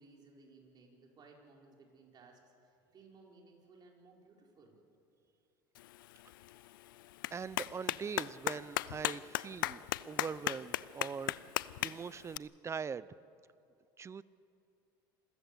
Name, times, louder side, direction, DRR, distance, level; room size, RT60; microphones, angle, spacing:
voice 1, 0.0-4.8, right 3 dB, 40° right, -1 dB, 5.3 m, -60 dB
Clapping, 5.7-12.4, left 15 dB, 90° left, 0.5 m, -38 dB
voice 2, 7.3-11.5 11.8-13.1 14.0-14.2, right 6 dB, 25° right, 19 dB, 0.6 m, -42 dB
27.5 x 14.5 x 8.5 m, 2.6 s
supercardioid pair, 90°, 11 cm